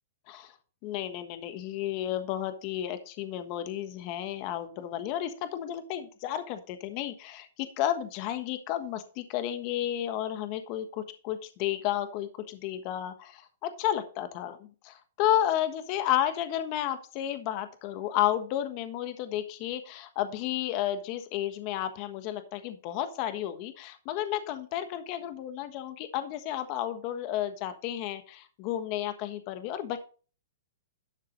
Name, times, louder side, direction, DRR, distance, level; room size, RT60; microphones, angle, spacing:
voice 1, 0.8-30.0, left 12 dB, 35° left, 9 dB, 1.3 m, -32 dB
11.5 x 6.5 x 4.0 m, 0.38 s
hypercardioid pair, 155°, 0 cm